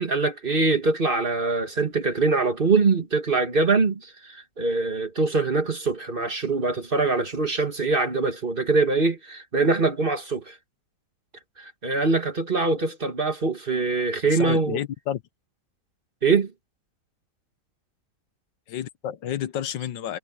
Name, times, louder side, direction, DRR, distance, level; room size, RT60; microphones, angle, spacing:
voice 1, 0.0-10.6 11.6-14.8 16.2-16.5, right 3 dB, 30° right, 1.8 m, -23 dB
voice 2, 14.3-15.2 18.7-20.2, left 10 dB, 85° left, 1.6 m, -30 dB
omnidirectional pair, 1.9 m